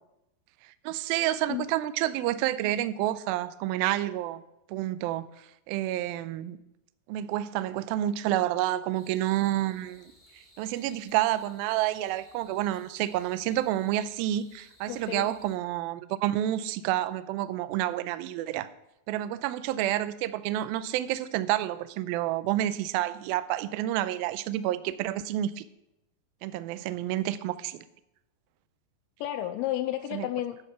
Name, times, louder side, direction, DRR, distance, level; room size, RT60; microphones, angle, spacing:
voice 1, 0.8-4.4 4.7-6.6 7.1-10.1 10.6-18.7 19.1-25.7 26.4-27.8 30.1-30.3, right 13 dB, 85° right, 14 dB, 2.1 m, -29 dB
sound 1, 8.9-15.6, left 1 dB, 25° left, 1.4 m, -59 dB
voice 2, 14.9-15.3 29.2-30.6, left 13 dB, 80° left, 8 dB, 2.4 m, -32 dB
11.0 x 8.1 x 6.0 m, 0.89 s
omnidirectional pair, 4.9 m